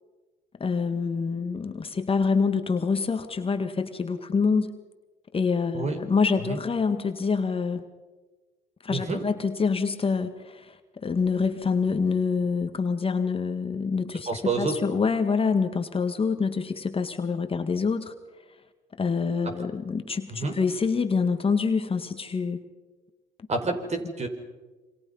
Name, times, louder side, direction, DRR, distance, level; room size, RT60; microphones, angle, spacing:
voice 1, 0.6-4.7 5.3-7.8 8.8-18.1 19.0-22.6, left 5 dB, 30° left, 7 dB, 1.9 m, -26 dB
voice 2, 8.9-9.2 14.3-14.8 19.4-19.5 20.3-20.6 23.5-24.3, right 3 dB, 35° right, 6 dB, 4.9 m, -28 dB
28.0 x 25.5 x 5.6 m, 1.2 s
supercardioid pair, 75°, 19 cm